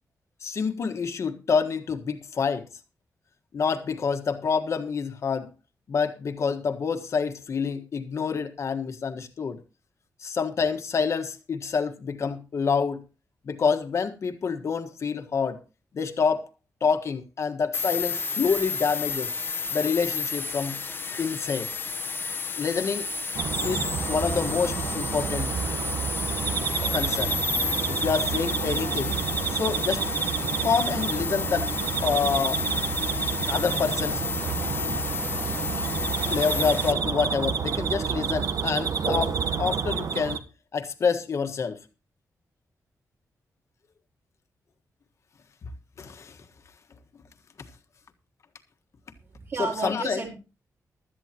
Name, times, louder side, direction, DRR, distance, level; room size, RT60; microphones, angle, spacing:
voice 1, 0.4-2.6 3.5-5.5 5.9-9.6 10.2-13.0 13.4-15.6 15.9-16.5 16.8-19.3 19.7-20.8 21.2-21.7 22.6-23.1 23.6-25.5 26.9-27.4 27.9-29.2 29.5-30.1 30.6-31.7 32.0-32.6 33.5-34.2 36.3-41.8 46.0-46.4 49.6-50.2, left 5 dB, 50° left, 1.6 m, -27 dB
sound 1, 17.7-36.9, left 4 dB, 35° left, 1.0 m, -31 dB
sound 2, 23.3-40.4, right 6 dB, 75° right, 1.3 m, -29 dB
voice 2, 49.2-50.4, right 4 dB, 45° right, 3.9 m, -32 dB
16.5 x 12.5 x 2.9 m
wide cardioid pair, 170°, 6 cm